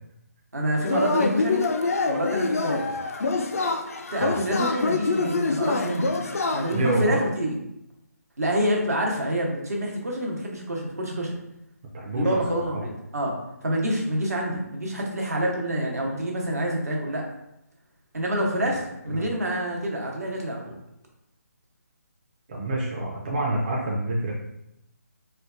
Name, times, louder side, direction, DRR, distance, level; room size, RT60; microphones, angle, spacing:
voice 1, 0.5-1.6 2.0-3.0 4.1-6.2 6.5-7.6 8.4-11.4 12.1-13.4 13.6-17.2 18.1-20.8, equal, 65° right, 0 dB, 1.0 m, -27 dB
Yell / Cheering, 0.8-7.0, left 3 dB, 60° left, 0.4 m, -26 dB
voice 2, 6.7-7.2 11.9-12.4 12.7-12.8 19.1-19.2 22.5-24.3, right 1 dB, 30° right, -3 dB, 0.5 m, -27 dB
4.3 x 2.3 x 2.5 m, 0.84 s
figure-of-eight pair, 150°, 9 cm